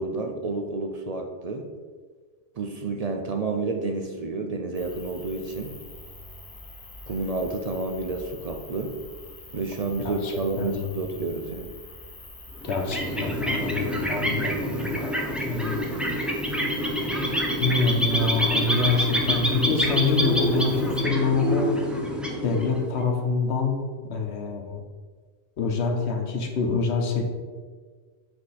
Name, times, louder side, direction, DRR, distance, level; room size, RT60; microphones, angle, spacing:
voice 1, 0.0-1.7 2.6-5.7 7.1-8.9 9.5-11.8, right 3 dB, 45° right, 4 dB, 0.5 m, -30 dB
sound 1, 4.7-21.0, left 2 dB, 35° left, 1.1 m, -45 dB
voice 2, 10.0-10.9 12.6-15.8 17.6-21.8 22.4-23.8 24.1-24.8 25.6-27.3, left 4 dB, 85° left, 2 dB, 1.2 m, -26 dB
sound 2, 12.6-23.0, equal, ahead, 0.6 m, -27 dB
6.6 x 4.5 x 4.1 m, 1.5 s
omnidirectional pair, 1.1 m